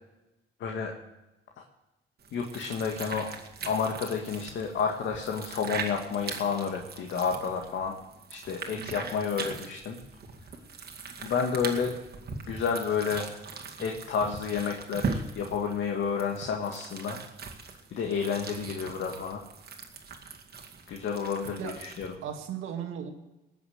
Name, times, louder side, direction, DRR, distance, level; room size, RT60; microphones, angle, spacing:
voice 1, 0.6-0.9 1.6-1.7 2.3-3.4 3.7-7.9 8.3-10.0 11.2-11.9 12.5-13.4 13.8-17.2 17.9-19.4 20.9-22.1, left 6 dB, 70° left, 1 dB, 1.9 m, -30 dB
sound 1, 2.2-22.2, right 4 dB, 50° right, 2.2 m, -40 dB
voice 2, 8.7-9.1 21.6-21.8 22.2-23.1, right 8 dB, 90° right, 4 dB, 2.2 m, -37 dB
19.0 x 7.1 x 8.0 m, 1.0 s
cardioid pair, 90°, 20 cm